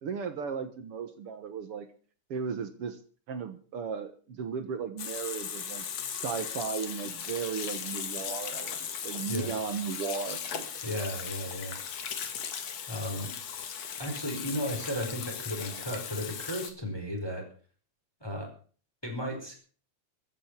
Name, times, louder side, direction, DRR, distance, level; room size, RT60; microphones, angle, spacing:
voice 1, 0.0-1.9 2.3-3.0 3.3-10.8, right 6 dB, 55° right, 9 dB, 2.1 m, -36 dB
Water tap faucet / Sink (filling or washing), 5.0-16.7, left 8 dB, 65° left, 2.8 m, -38 dB
voice 2, 10.8-11.8 12.9-13.3 14.0-17.4 18.2-18.5 19.0-19.6, equal, 10° left, 1 dB, 4.7 m, -34 dB
15.0 x 9.2 x 8.3 m, 0.43 s
omnidirectional pair, 3.3 m